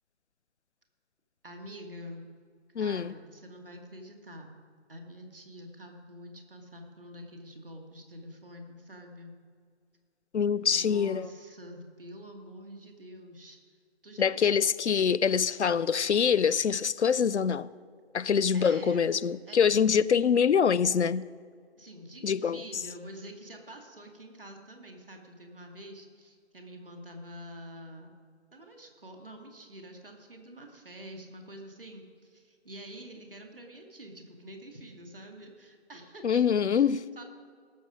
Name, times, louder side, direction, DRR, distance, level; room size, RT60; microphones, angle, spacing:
voice 1, 1.4-2.2 2.8-4.5 4.9-9.3 10.5-13.6 14.0-14.4 18.5-19.1 19.5-19.8 21.8-28.1 28.5-37.2, equal, 50° right, 2.0 m, -47 dB
voice 2, 2.8-3.1 10.3-11.3 14.2-17.7 18.1-21.3 22.2-22.6 36.2-37.0, left 7 dB, 80° left, 0.5 m, -25 dB
18.0 x 7.1 x 5.0 m
figure-of-eight pair, 170°, 34 cm